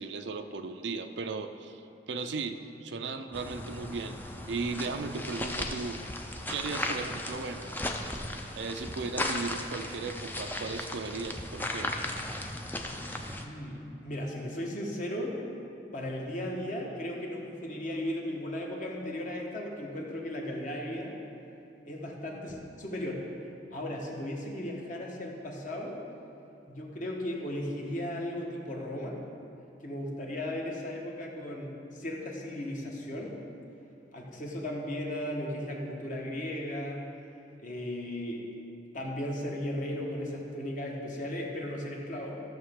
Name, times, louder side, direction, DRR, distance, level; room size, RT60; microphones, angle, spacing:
voice 1, 0.0-1.8 2.1-4.1 4.5-6.0 6.5-7.7 8.6-11.9, right 4 dB, 70° right, 7 dB, 0.5 m, -36 dB
sound 1, 3.3-13.4, left 1 dB, 10° left, 0.5 m, -36 dB
voice 2, 13.4-15.4 15.9-21.2 21.8-23.2 23.7-26.0 26.7-29.2 29.8-33.4 34.1-37.0 37.6-38.5 38.9-42.4, left 1 dB, 45° left, -1 dB, 1.3 m, -36 dB
14.0 x 6.6 x 3.7 m, 2.8 s
head